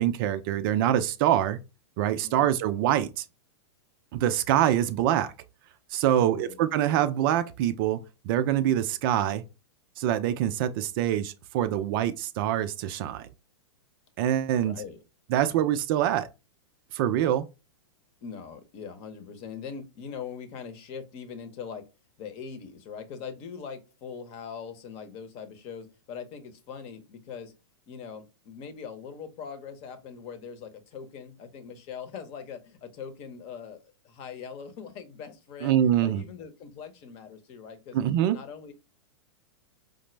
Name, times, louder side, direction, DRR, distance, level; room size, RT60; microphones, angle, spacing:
voice 1, 0.0-1.6 2.0-3.2 4.1-5.3 5.9-9.4 10.0-13.3 14.2-14.8 15.3-16.3 16.9-17.5 35.6-36.2 37.9-38.4, right 11 dB, 50° right, 0.4 m, -25 dB
voice 2, 2.2-2.5 6.2-6.6 14.5-15.0 15.4-15.6 18.2-21.9 22.2-27.5 27.9-38.0 38.3-38.7, left 6 dB, 40° left, 0.8 m, -41 dB
5.0 x 2.0 x 3.2 m
hypercardioid pair, 120°, 15 cm